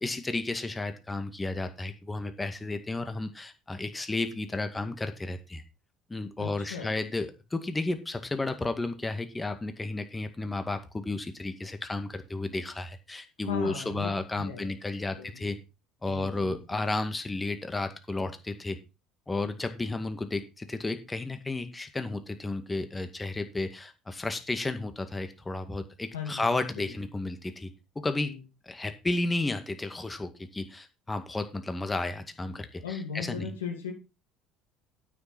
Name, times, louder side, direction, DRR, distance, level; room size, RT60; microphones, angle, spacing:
voice 1, 0.0-5.6 6.1-15.6 16.0-18.8 19.3-28.4 28.7-33.5, left 2 dB, 15° left, 8 dB, 2.0 m, -33 dB
voice 2, 6.4-7.0 13.5-14.1 14.3-14.7 15.2-15.5 16.1-16.8 26.1-26.9 28.2-28.4 32.8-33.9, left 6 dB, 80° left, 2 dB, 2.8 m, -38 dB
9.3 x 8.6 x 4.6 m, 0.28 s
figure-of-eight pair, 60°, 0 cm